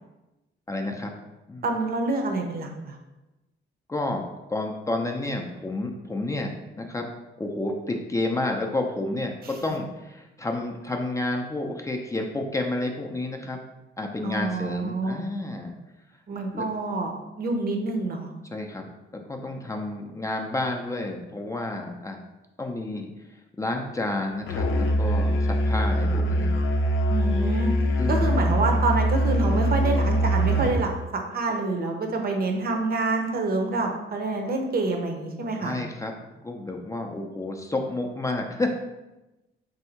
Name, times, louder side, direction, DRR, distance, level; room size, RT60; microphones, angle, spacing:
voice 1, 0.7-1.1 1.5-1.7 3.9-4.2 4.5-6.5 6.8-7.1 7.4-13.6 14.0-15.8 16.5-16.7 18.5-18.9 19.3-22.2 22.6-23.1 23.6-26.5 28.0-28.3 35.6-38.7, left 2 dB, 15° left, 2 dB, 0.5 m, -30 dB
voice 2, 1.6-2.9 14.2-15.2 16.3-17.1 17.4-18.3 27.1-27.7 28.1-35.8, right 3 dB, 50° right, 3 dB, 0.8 m, -27 dB
Musical instrument, 24.5-30.8, equal, 80° left, 0.5 m, -23 dB
3.4 x 2.7 x 4.4 m, 1.0 s
cardioid pair, 90°, 20 cm